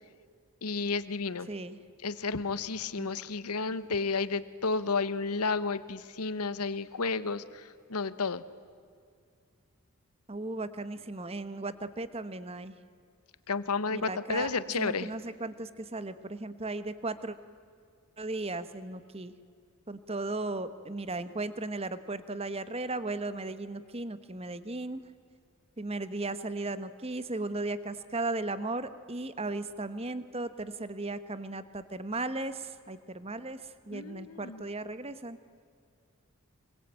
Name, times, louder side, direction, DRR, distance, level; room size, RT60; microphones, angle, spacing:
voice 1, 0.6-1.5 2.0-8.4 13.5-15.1 33.9-34.6, left 4 dB, 85° left, 15 dB, 1.1 m, -32 dB
voice 2, 1.5-1.8 3.0-3.3 3.8-3.9 10.3-12.8 13.9-14.5 14.8-17.4 18.2-19.3 19.9-25.0 25.8-35.4, right 2 dB, 25° right, 13 dB, 1.2 m, -36 dB
26.5 x 23.0 x 9.0 m, 2.2 s
head